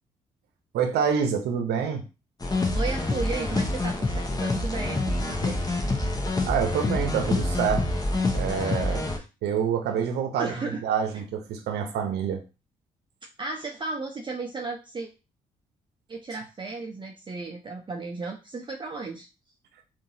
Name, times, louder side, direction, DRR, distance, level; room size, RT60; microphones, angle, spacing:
voice 1, 0.7-2.0 6.4-8.0 8.3-9.1 9.4-12.4, right 7 dB, 65° right, 5 dB, 0.8 m, -27 dB
sound 1, 2.4-9.2, left 2 dB, 20° left, 0.9 m, -26 dB
voice 2, 2.7-5.6 9.2-9.3 10.4-10.8 11.1-11.2 13.4-15.1 16.1-19.3, right 3 dB, 25° right, 2 dB, 0.6 m, -34 dB
3.7 x 2.5 x 2.8 m, 0.29 s
hypercardioid pair, 45°, 18 cm